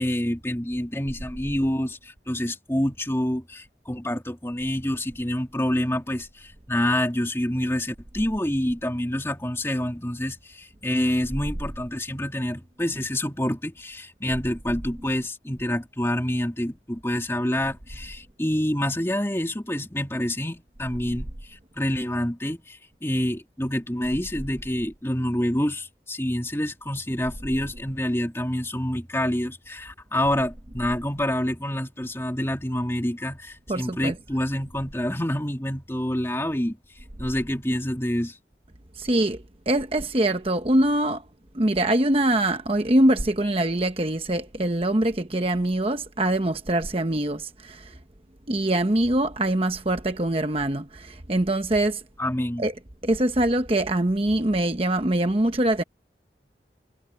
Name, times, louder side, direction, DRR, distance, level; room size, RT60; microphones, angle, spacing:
voice 1, 0.0-36.8 37.2-38.4 52.2-52.6, left 1 dB, 15° left, 2.5 m, -27 dB
voice 2, 33.7-34.1 39.0-41.2 41.5-48.0 48.5-52.0 52.6-52.7 53.0-55.8, right 1 dB, 30° right, 1.0 m, -23 dB
head